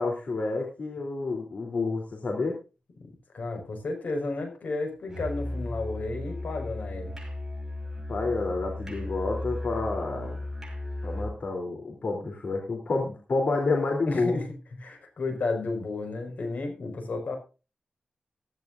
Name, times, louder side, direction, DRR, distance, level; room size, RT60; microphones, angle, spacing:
voice 1, 0.0-2.6 8.1-10.4 11.0-14.4, left 3 dB, 60° left, 1 dB, 3.3 m, -29 dB
voice 2, 3.3-7.1 14.1-14.5 14.8-17.4, left 3 dB, 75° left, 5 dB, 5.4 m, -32 dB
Musical instrument, 5.1-11.4, left 1 dB, 15° right, 6.3 m, -35 dB
15.5 x 15.5 x 2.6 m, 0.32 s
wide cardioid pair, 135°, 3 cm